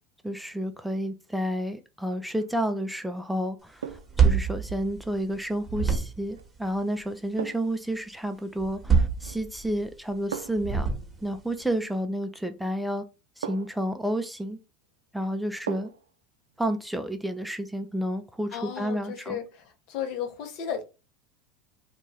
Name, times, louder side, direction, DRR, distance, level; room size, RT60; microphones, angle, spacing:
voice 1, 0.2-10.9 11.2-13.0 13.4-14.6 15.1-15.9 16.6-19.4, equal, ahead, 0.4 m, -30 dB
sound 1, 2.2-2.6 3.8-4.2 6.3-6.5 7.4-7.8 9.2-9.6 10.3-10.8 12.4-12.5 13.4-13.9 15.7-16.1 16.5-16.6, right 7 dB, 85° right, 0.3 m, -38 dB
sound 2, 3.9-5.4 5.6-6.4 8.6-9.8 10.6-11.4, right 5 dB, 20° right, 1.1 m, -25 dB
voice 2, 18.5-20.8, left 8 dB, 60° left, 0.7 m, -34 dB
2.6 x 2.3 x 3.1 m
hypercardioid pair, 85°, 0 cm